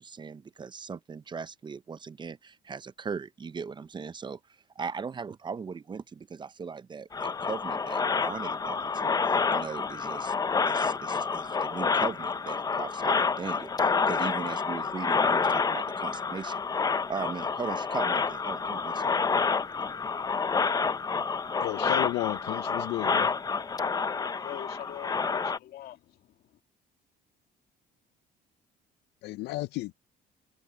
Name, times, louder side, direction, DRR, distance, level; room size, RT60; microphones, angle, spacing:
voice 1, 0.0-4.4 4.8-10.3 10.7-16.6 17.1-19.1, right 5 dB, 25° right, 0.6 m, -38 dB
sound 1, 7.1-25.6, left 5 dB, 20° left, 0.7 m, -28 dB
voice 2, 21.6-23.3 29.2-30.0, left 18 dB, 85° left, 0.5 m, -33 dB
voice 3, 23.9-26.4, left 12 dB, 65° left, 2.0 m, -43 dB
cardioid pair, 110°, 17 cm